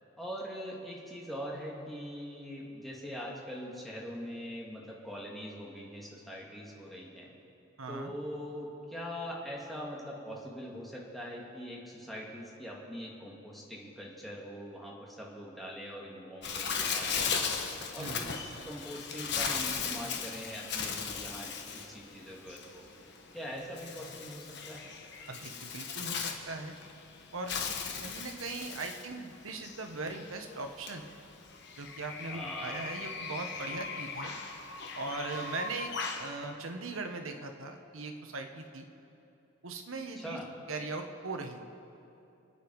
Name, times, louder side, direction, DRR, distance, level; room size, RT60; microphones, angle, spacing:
voice 1, 0.2-7.3 7.9-17.5 17.9-22.9 23.3-24.9 32.3-32.9 40.2-40.5, equal, ahead, -4 dB, 2.1 m, -42 dB
voice 2, 7.8-8.1 18.0-18.2 25.3-26.7 27.3-27.5 28.0-31.0 31.8-34.3 34.9-35.9 36.2-38.9 39.6-40.4 40.7-41.6, right 3 dB, 80° right, 5 dB, 1.3 m, -39 dB
Bird, 16.4-36.3, left 6 dB, 55° left, 1.2 m, -38 dB
26.0 x 9.1 x 4.8 m, 2.8 s
head